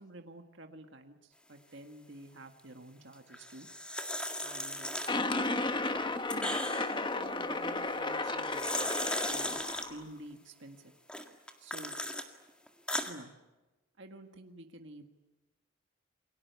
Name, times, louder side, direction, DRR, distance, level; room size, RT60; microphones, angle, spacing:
voice 1, 0.0-3.7 4.4-5.0 6.3-8.9 9.2-10.9 11.6-12.0 13.1-13.3 14.0-15.0, right 1 dB, 55° right, 5 dB, 1.8 m, -50 dB
sound 1, 3.3-5.5 5.9-7.0 8.2-9.9 11.1-12.3 12.7-13.1, left 1 dB, 5° left, 1.9 m, -37 dB
sound 2, 5.1-10.0, left 2 dB, 20° left, 1.3 m, -34 dB
29.0 x 23.0 x 8.3 m, 1.1 s
head